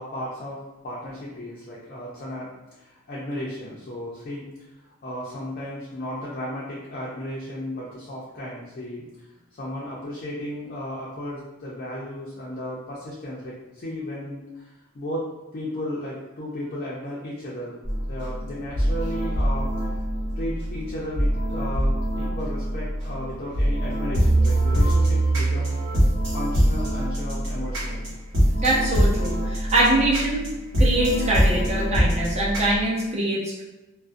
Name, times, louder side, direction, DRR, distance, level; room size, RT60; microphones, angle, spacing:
voice 1, 0.0-4.5 5.0-9.1 9.5-19.7 20.4-25.9 26.3-28.1, left 1 dB, 45° left, -6 dB, 0.4 m, -34 dB
sound 1, 17.8-32.8, right 1 dB, 60° right, 1.0 m, -23 dB
voice 2, 28.6-30.5 30.8-33.6, right 1 dB, 35° right, -4 dB, 0.6 m, -23 dB
2.4 x 2.1 x 2.5 m, 1.0 s
head